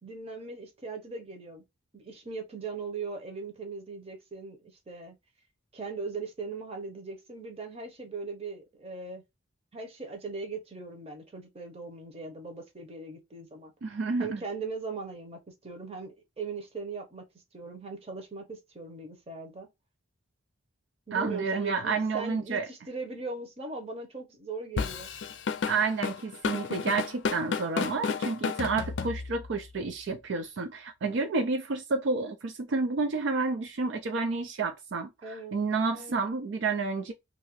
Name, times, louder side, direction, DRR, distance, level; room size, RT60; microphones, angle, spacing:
voice 1, 0.0-1.6 1.9-4.6 4.9-5.2 5.7-9.2 9.7-13.7 14.2-17.2 17.5-19.7 21.1-25.1 35.2-35.5 35.9-36.2, right 4 dB, 30° right, 0.9 m, -39 dB
voice 2, 13.8-14.4 21.1-22.7 25.7-37.1, right 4 dB, 70° right, 0.4 m, -30 dB
Drum kit / Drum, 24.8-29.6, left 5 dB, 65° left, 0.4 m, -31 dB
2.7 x 2.5 x 3.0 m
head